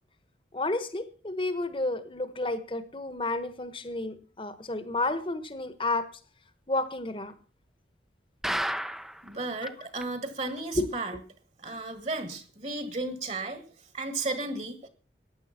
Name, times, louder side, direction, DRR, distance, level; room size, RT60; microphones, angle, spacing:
voice 1, 0.5-6.1 6.7-7.3 9.6-9.7 10.7-10.9, left 2 dB, 30° left, 12 dB, 1.3 m, -31 dB
sound 1, 8.4-9.3 9.7-9.8 10.0-10.1 10.6-10.7, equal, ahead, 0.7 m, -31 dB
voice 2, 9.2-11.2 11.6-13.6 13.9-14.9, right 2 dB, 40° right, 10 dB, 1.7 m, -34 dB
15.0 x 10.5 x 5.9 m, 0.40 s
head